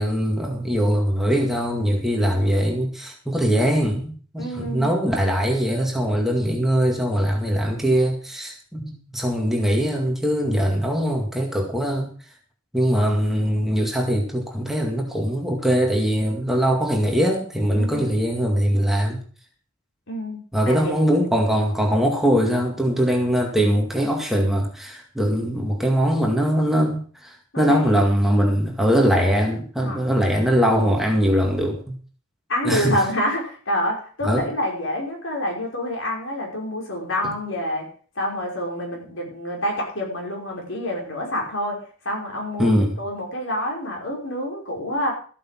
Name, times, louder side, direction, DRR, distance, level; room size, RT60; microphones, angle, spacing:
voice 1, 0.0-12.1 12.7-19.2 20.5-31.9 32.6-33.0 34.2-34.4 37.2-37.3 42.6-43.0, equal, ahead, 0 dB, 2.1 m, -21 dB
voice 2, 4.4-4.9 17.7-18.1 20.1-20.9 27.5-28.1 29.8-30.0 32.5-37.9 38.2-45.1, left 1 dB, 70° left, -1 dB, 5.5 m, -27 dB
14.0 x 8.5 x 5.9 m, 0.42 s
head